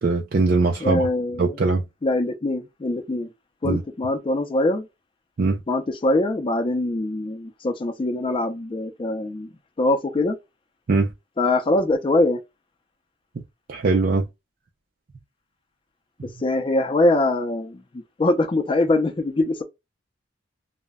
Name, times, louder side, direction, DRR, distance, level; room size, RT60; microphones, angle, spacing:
voice 1, 0.0-1.1 1.4-1.8 3.6-3.8 5.4-5.6 10.9-11.1 13.7-14.3, right 3 dB, 50° right, 0.4 m, -21 dB
voice 2, 0.8-1.6 2.0-3.3 3.6-4.9 5.7-9.5 9.8-10.4 11.4-12.4 16.4-19.6, left 2 dB, 30° left, 0.4 m, -23 dB
2.1 x 2.1 x 3.4 m
head